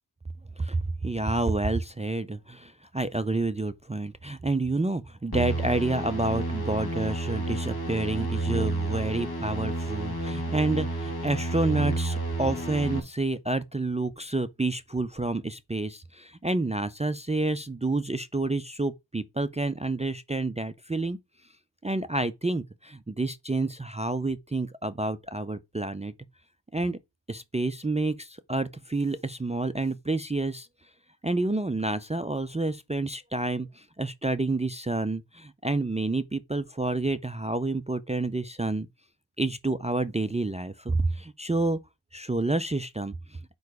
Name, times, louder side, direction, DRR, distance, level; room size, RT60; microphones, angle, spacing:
voice 1, 0.6-21.2 21.8-26.1 26.7-27.0 27.3-30.7 31.2-38.9 39.4-41.8 42.1-43.5, right 2 dB, 15° right, 0.4 m, -29 dB
sound 1, 5.3-13.0, right 2 dB, 50° left, 1.7 m, -30 dB
4.7 x 4.6 x 4.7 m
wide cardioid pair, 45°, 47 cm